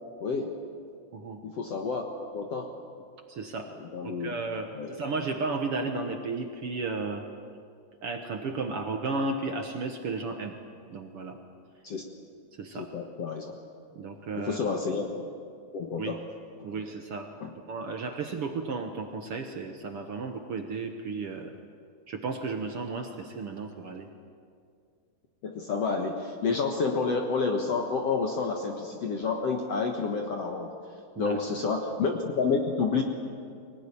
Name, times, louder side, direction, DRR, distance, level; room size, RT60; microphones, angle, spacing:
voice 1, 0.2-0.5 1.4-2.0 2.3-2.7 3.8-4.3 4.7-4.9 11.8-12.0 12.7-13.6 14.4-15.1 15.7-16.2 16.6-16.7 17.4-17.5 25.4-30.7 31.2-33.0, left 4 dB, 60° left, 3 dB, 1.8 m, -29 dB
voice 2, 3.3-3.7 4.0-7.2 8.0-10.6 10.9-11.4 12.6-12.9 13.9-14.8 16.0-16.2 16.6-17.3 17.7-21.5 22.1-24.1 31.1-31.4, right 3 dB, 70° right, 4 dB, 1.3 m, -34 dB
24.5 x 18.5 x 10.0 m, 2.3 s
omnidirectional pair, 4.6 m